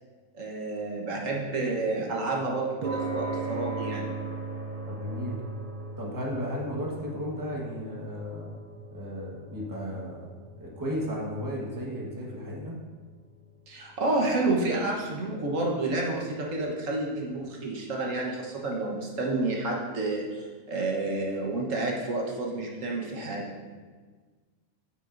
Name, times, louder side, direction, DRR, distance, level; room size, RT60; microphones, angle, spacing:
voice 1, 0.3-4.1 13.7-23.4, right 2 dB, 80° right, -1 dB, 1.6 m, -30 dB
sound 1, 2.8-19.3, right 3 dB, 45° right, 0.5 m, -41 dB
voice 2, 4.9-5.4 6.0-8.5 8.9-10.3 10.6-12.8, equal, 15° right, -3 dB, 1.3 m, -34 dB
9.1 x 9.0 x 2.6 m, 1.5 s
omnidirectional pair, 1.3 m